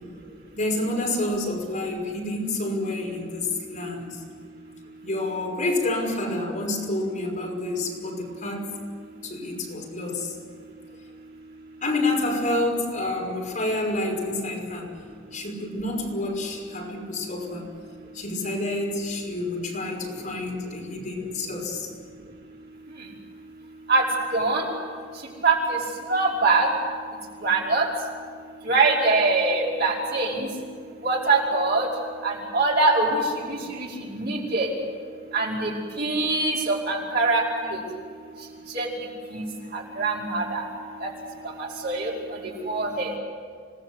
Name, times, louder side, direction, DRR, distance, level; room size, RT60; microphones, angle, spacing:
voice 1, 0.5-4.2 5.0-8.7 9.2-10.4 11.8-14.9 15.3-17.7 18.1-21.9 38.3-38.4, left 2 dB, 45° left, -1 dB, 5.6 m, -28 dB
voice 2, 24.3-24.6 25.4-25.8 26.1-26.7 27.4-27.8 28.7-30.5 31.0-31.9 32.2-33.2 33.5-33.6 34.1-34.7 35.3-35.7 36.0-37.4 38.7-38.9 39.3-39.4 39.7-40.6 41.0-41.1 41.8-42.1 42.7-43.1, right 3 dB, 55° right, -3 dB, 5.0 m, -22 dB
26.5 x 19.0 x 8.2 m, 2.1 s
head